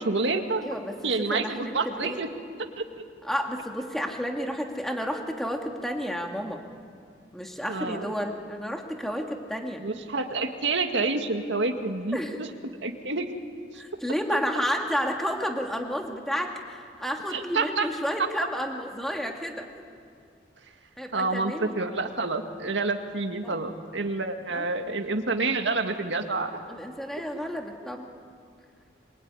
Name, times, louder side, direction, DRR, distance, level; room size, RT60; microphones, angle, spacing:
voice 1, 0.0-0.6 1.0-2.3 2.8-3.0 7.7-8.1 9.8-12.5 12.8-13.3 17.3-17.9 18.2-18.3 21.1-26.6, right 3 dB, 85° right, 5 dB, 2.1 m, -28 dB
voice 2, 0.6-2.2 3.2-6.6 7.3-9.8 12.1-12.4 13.7-19.7 21.0-21.8 23.4-23.6 24.5-24.7 26.7-28.1, equal, ahead, 2 dB, 2.3 m, -31 dB
25.5 x 23.0 x 9.8 m, 2.3 s
head